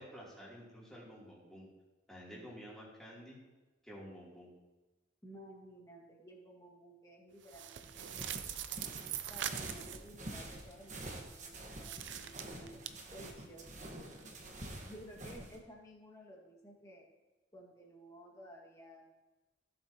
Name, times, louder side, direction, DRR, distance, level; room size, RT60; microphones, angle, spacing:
voice 1, 0.0-1.7 2.1-3.4 3.8-4.5, equal, ahead, -7 dB, 3.0 m, -51 dB
voice 2, 5.2-8.2 9.3-13.7 14.9-17.1 17.5-19.1, right 1 dB, 20° left, -1 dB, 1.8 m, -54 dB
sound 1, 7.4-10.1 11.8-12.9, right 10 dB, 70° right, 0.5 m, -42 dB
sound 2, 7.8-15.6, right 1 dB, 40° right, 1.3 m, -47 dB
16.0 x 7.4 x 2.9 m, 1.1 s
head